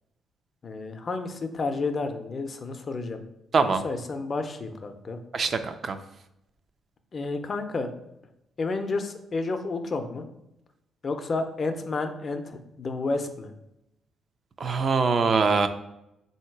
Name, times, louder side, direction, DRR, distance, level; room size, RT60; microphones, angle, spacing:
voice 1, 0.6-3.2 3.8-5.2 7.1-7.9 8.6-10.2 11.0-13.5, left 3 dB, 40° left, 7 dB, 0.5 m, -31 dB
voice 2, 5.3-6.0 14.6-15.7, right 4 dB, 45° right, 9 dB, 0.4 m, -23 dB
3.7 x 2.8 x 4.5 m, 0.86 s
cardioid pair, 90°, 0 cm